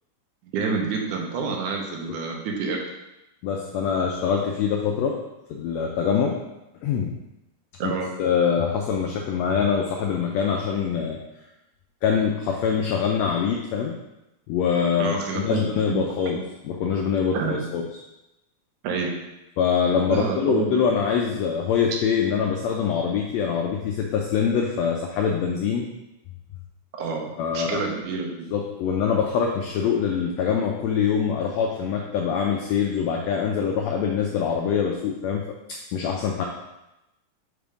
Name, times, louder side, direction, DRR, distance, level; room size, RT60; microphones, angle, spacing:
voice 1, 0.4-2.8 7.8-8.1 15.0-16.4 17.3-17.6 18.8-19.1 20.1-20.7 26.9-28.5, right 5 dB, 80° right, 1 dB, 2.2 m, -28 dB
voice 2, 3.4-5.2 5.5-6.4 6.8-7.1 7.8-7.9 8.2-11.2 12.0-13.9 14.5-16.4 16.6-17.8 19.6-25.9 27.4-27.8 28.5-35.4 35.7-36.4, left 7 dB, 85° left, 1 dB, 1.5 m, -24 dB
5.4 x 3.5 x 5.0 m, 0.95 s
omnidirectional pair, 3.6 m